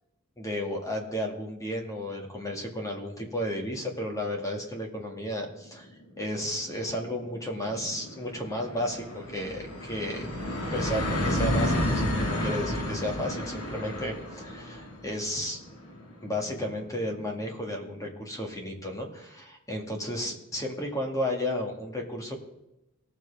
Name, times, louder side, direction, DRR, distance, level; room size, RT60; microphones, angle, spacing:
voice 1, 0.4-5.9 6.2-10.3 10.7-15.6 16.2-22.4, left 1 dB, 15° left, 1 dB, 2.0 m, -33 dB
sound 1, 5.7-5.8 6.2-6.3 6.5-17.9, left 1 dB, 80° left, 2.1 m, -32 dB
18.5 x 7.5 x 3.4 m, 0.92 s
head